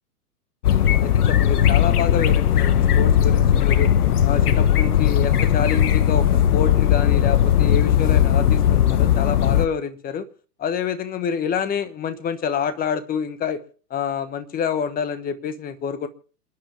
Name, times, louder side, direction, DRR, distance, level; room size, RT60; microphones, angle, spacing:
sound 1, 0.6-9.7, left 10 dB, 70° left, 1.2 m, -18 dB
voice 1, 0.8-3.9 4.2-6.3 6.5-10.2 10.6-13.6 13.9-16.1, left 7 dB, 20° left, 12 dB, 1.2 m, -27 dB
28.0 x 10.0 x 3.6 m, 0.41 s
figure-of-eight pair, 110°, 47 cm